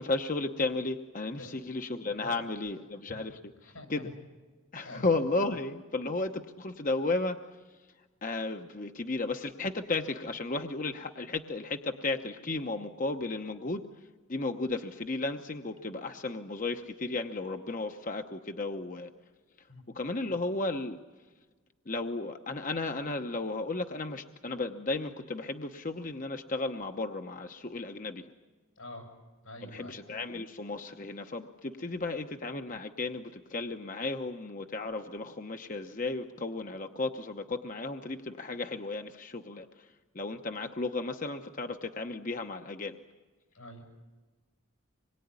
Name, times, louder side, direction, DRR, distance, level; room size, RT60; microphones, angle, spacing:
voice 1, 0.0-4.1 4.7-7.8 8.2-13.8 14.3-19.1 19.6-19.7 19.9-21.0 21.9-28.3 29.6-43.0, left 3 dB, 40° left, 6 dB, 0.9 m, -34 dB
voice 2, 3.6-4.1 4.8-5.1 19.7-19.8 28.8-29.1 29.4-30.0 43.5-43.8, left 1 dB, 90° left, 3 dB, 7.4 m, -45 dB
26.0 x 22.0 x 9.6 m, 1.3 s
head